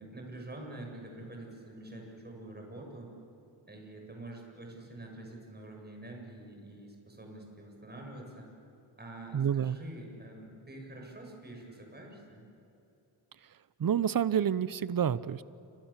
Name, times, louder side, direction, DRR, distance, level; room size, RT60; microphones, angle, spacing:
voice 1, 0.0-3.1 3.7-8.5 9.0-12.4, right 1 dB, 20° right, 1 dB, 7.7 m, -46 dB
voice 2, 9.3-9.8 13.8-15.4, right 8 dB, 45° right, 17 dB, 0.9 m, -28 dB
29.0 x 25.0 x 7.5 m, 2.9 s
cardioid pair, 85°, 47 cm